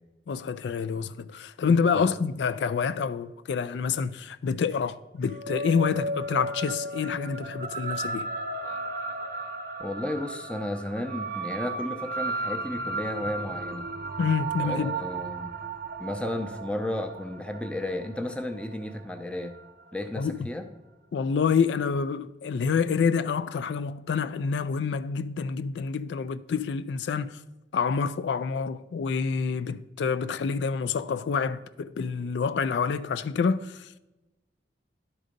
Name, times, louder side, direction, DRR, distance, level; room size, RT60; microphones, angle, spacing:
voice 1, 0.3-8.3 14.2-14.9 20.2-20.4 21.1-27.4 27.7-33.9, left 5 dB, 80° left, 0.3 m, -27 dB
sound 1, 5.2-19.9, right 3 dB, 50° right, 0.6 m, -35 dB
voice 2, 9.8-13.9 14.6-15.5 16.0-19.5 19.9-20.7, left 1 dB, 5° left, 0.6 m, -33 dB
11.5 x 4.0 x 5.1 m
head